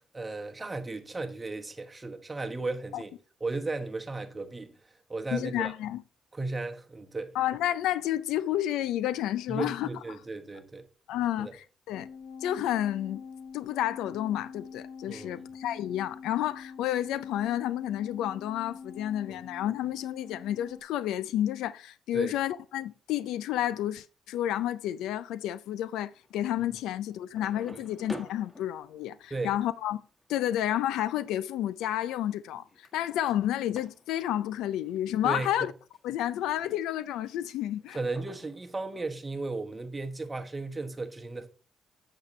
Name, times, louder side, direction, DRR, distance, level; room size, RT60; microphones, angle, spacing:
voice 1, 0.0-3.1 3.4-4.7 5.1-5.7 6.3-7.3 9.5-10.9 11.4-11.5 15.1-15.4 19.3-19.4 22.1-22.3 29.3-29.5 35.2-35.7 37.9-41.5, right 3 dB, 20° right, 1.2 m, -35 dB
voice 2, 5.3-6.0 7.3-9.9 11.1-12.1 12.4-13.2 13.5-30.0 30.3-35.7 36.0-38.0, left 12 dB, 90° left, 0.4 m, -30 dB
sound 1, 11.9-20.8, left 5 dB, 65° left, 1.6 m, -45 dB
sound 2, 26.2-26.7 27.2-34.5 34.8-35.0 35.4-36.0 36.4-37.5 37.8-39.0, left 1 dB, 20° left, 1.5 m, -49 dB
8.0 x 7.4 x 3.2 m
cardioid pair, 90°, 0 cm